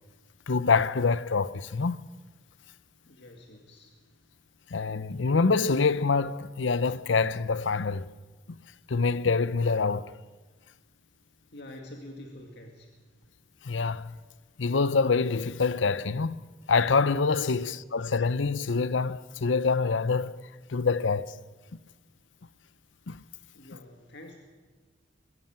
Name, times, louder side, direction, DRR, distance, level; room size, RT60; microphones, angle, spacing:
voice 1, 0.5-2.1 4.7-8.1 8.9-10.1 13.6-14.1 14.6-16.4 16.7-20.4 20.7-21.3 23.1-23.2, left 4 dB, 80° left, 0.7 m, -26 dB
voice 2, 3.1-3.9 11.5-12.9 17.5-17.9 23.5-24.4, left 1 dB, 65° left, 2.2 m, -47 dB
23.0 x 15.5 x 9.0 m
head